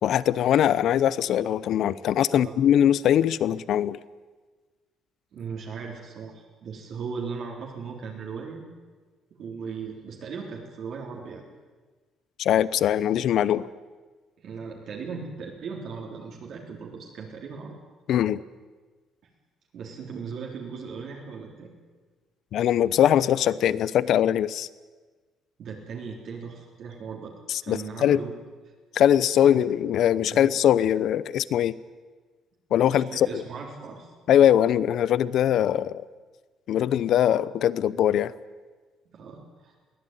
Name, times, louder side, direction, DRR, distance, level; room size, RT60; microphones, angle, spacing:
voice 1, 0.0-4.0 12.4-13.7 18.1-18.4 22.5-24.7 27.5-28.2 28.9-31.8 32.7-33.4 34.3-36.0 36.7-38.3, left 10 dB, 60° left, 19 dB, 0.7 m, -22 dB
voice 2, 5.3-8.7 9.4-11.5 14.4-17.7 19.7-21.7 25.6-27.3 27.6-28.3 29.5-29.6 30.3-30.5 32.7-34.1 39.1-39.7, right 5 dB, 55° right, -1 dB, 3.6 m, -38 dB
22.5 x 16.5 x 9.3 m, 1.4 s
cardioid pair, 145°, 0 cm